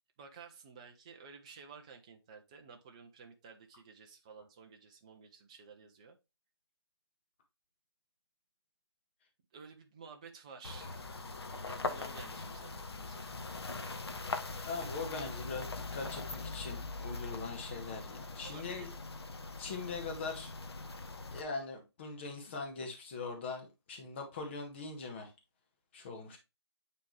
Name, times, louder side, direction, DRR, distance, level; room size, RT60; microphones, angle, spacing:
voice 1, 0.2-6.2 9.5-11.1 11.7-13.4 18.4-19.0, right 5 dB, 15° right, 0.5 m, -53 dB
sound 1, 10.6-21.4, left 3 dB, 65° left, 1.1 m, -42 dB
voice 2, 14.6-18.9 19.6-20.5 21.3-25.3 25.9-26.4, left 4 dB, 25° left, 1.4 m, -41 dB
9.1 x 3.6 x 3.2 m
figure-of-eight pair, 160°, 14 cm